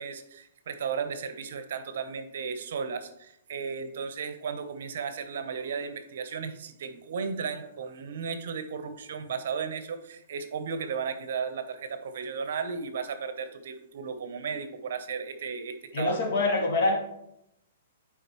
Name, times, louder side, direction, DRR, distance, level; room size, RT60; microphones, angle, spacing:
voice 1, 0.0-16.2, right 6 dB, 60° right, 9 dB, 0.8 m, -35 dB
voice 2, 15.9-17.1, left 2 dB, 50° left, 0 dB, 2.1 m, -25 dB
10.0 x 4.9 x 3.1 m, 0.78 s
hypercardioid pair, 170°, 0 cm